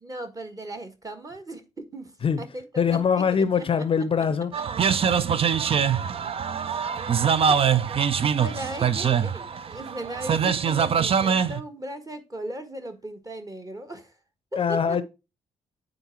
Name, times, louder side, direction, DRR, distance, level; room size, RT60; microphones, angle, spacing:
voice 1, 0.0-2.1 2.4-3.9 7.3-7.5 8.4-14.1 14.5-15.0, right 1 dB, 25° right, 1.5 m, -37 dB
voice 2, 2.8-4.5 14.6-15.0, left 6 dB, 40° left, 0.6 m, -23 dB
sound 1, 4.5-11.6, right 7 dB, 40° right, 0.5 m, -23 dB
9.0 x 3.9 x 4.5 m
figure-of-eight pair, 40°, 15 cm